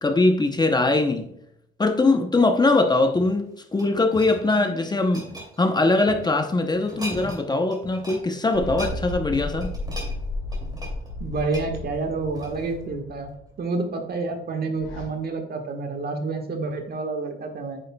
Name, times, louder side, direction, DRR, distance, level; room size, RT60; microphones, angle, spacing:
voice 1, 0.0-1.3 1.8-9.7, left 2 dB, 20° left, 0.8 m, -21 dB
sound 1, 3.1-6.3 6.7-7.4 7.7-8.2 8.5-12.8 13.4-13.5, right 1 dB, 20° right, 2.6 m, -39 dB
sound 2, 8.5-13.4 14.8-15.0, left 2 dB, 85° left, 1.9 m, -33 dB
voice 2, 11.2-13.3 13.6-17.8, right 3 dB, 50° right, 1.5 m, -29 dB
9.1 x 6.6 x 2.3 m
cardioid pair, 90°, 20 cm